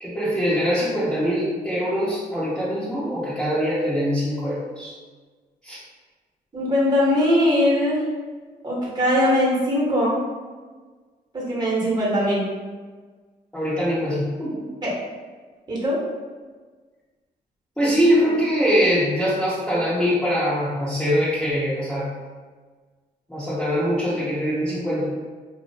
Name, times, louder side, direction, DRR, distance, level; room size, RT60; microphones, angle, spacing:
voice 1, 0.0-4.9 5.6-5.8 13.5-14.6 17.8-22.1 23.3-25.0, equal, 5° left, -11 dB, 0.7 m, -23 dB
voice 2, 6.5-8.0 8.6-10.2 11.3-12.5 14.8-14.9 15.7-16.0, left 1 dB, 25° right, -5 dB, 0.9 m, -21 dB
2.4 x 2.0 x 2.6 m, 1.4 s
cardioid pair, 65°, 17 cm